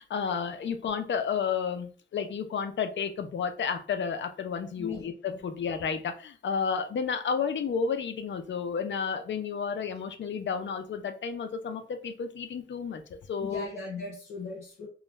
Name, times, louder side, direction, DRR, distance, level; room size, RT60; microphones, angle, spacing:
voice 1, 0.0-13.7, left 6 dB, 60° left, 8 dB, 0.5 m, -31 dB
voice 2, 4.8-5.6 13.4-14.9, left 3 dB, 90° left, -5 dB, 0.8 m, -39 dB
2.4 x 2.1 x 3.0 m, 0.40 s
cardioid pair, 65°, 21 cm